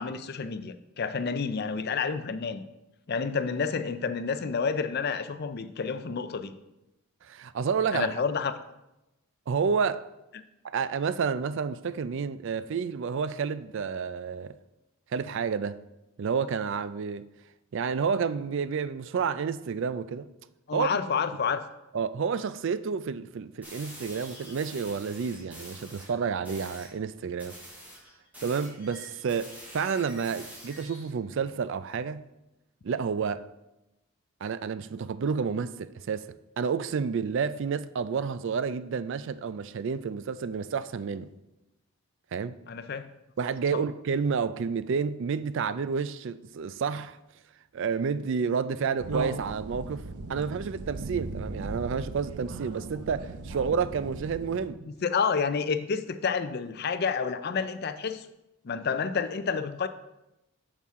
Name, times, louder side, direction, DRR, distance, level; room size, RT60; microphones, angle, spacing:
voice 1, 0.0-2.6 3.1-6.5 7.9-8.5 20.7-21.6 42.7-43.1 55.0-58.3 58.6-59.9, left 5 dB, 45° left, 0.4 m, -29 dB
voice 2, 7.2-8.1 9.5-10.0 10.6-14.6 15.1-15.8 16.2-17.3 17.7-20.3 20.7-20.9 21.9-27.6 28.4-32.3 32.8-33.5 34.4-41.3 42.3-42.6 43.4-47.2 47.7-54.9, right 6 dB, 55° right, 0.3 m, -30 dB
sound 1, 23.6-26.1 26.4-26.9 27.4-31.1, equal, 10° right, 3.2 m, -46 dB
sound 2, 49.0-54.7, right 3 dB, 85° right, 0.7 m, -38 dB
8.5 x 7.2 x 3.6 m
head